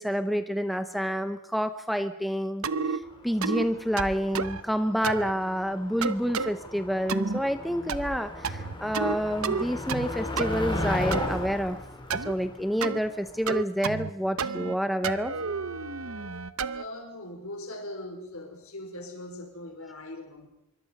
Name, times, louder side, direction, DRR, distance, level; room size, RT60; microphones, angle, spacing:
voice 1, 0.0-11.8 12.1-15.3, equal, ahead, 9 dB, 0.8 m, -28 dB
sound 1, 2.6-3.0 3.4-3.7 4.0-4.6 5.0-5.3 6.0-6.5 7.1-7.4 7.9-8.2 8.4-9.2 9.4-10.1 10.4-11.3 12.1-12.3 12.8-13.0 13.5-14.1 14.4-14.8 15.0-16.8, right 5 dB, 75° right, 0.9 m, -30 dB
Motor vehicle (road), 3.1-13.5, left 2 dB, 20° left, 3.1 m, -36 dB
voice 2, 16.7-20.5, left 1 dB, 75° left, 4 dB, 5.2 m, -40 dB
25.0 x 24.0 x 5.3 m, 0.92 s
head